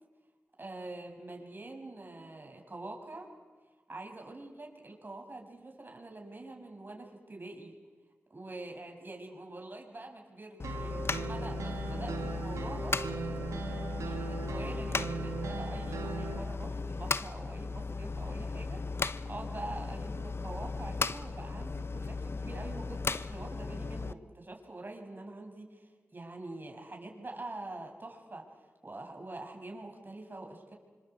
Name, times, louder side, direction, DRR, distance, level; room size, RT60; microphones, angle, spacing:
voice 1, 0.6-3.3 3.9-7.7 8.3-13.0 14.0-28.4 28.8-30.8, right 2 dB, 40° right, 2 dB, 7.2 m, -45 dB
sound 1, 10.6-24.1, left 4 dB, 50° left, 1.0 m, -36 dB
sound 2, 10.6-16.4, right 4 dB, 85° right, 3.0 m, -39 dB
26.5 x 25.5 x 8.4 m, 1.4 s
cardioid pair, 40°, 5 cm